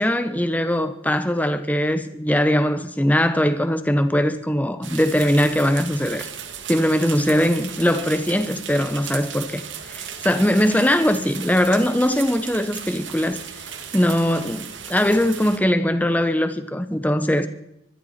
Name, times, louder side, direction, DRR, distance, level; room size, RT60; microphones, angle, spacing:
voice 1, 0.0-6.3 6.7-13.4 13.9-17.5, equal, 10° left, 1.0 m, -21 dB
sound 1, 4.8-15.6, right 8 dB, 85° right, 2.0 m, -36 dB
25.0 x 12.0 x 4.3 m
head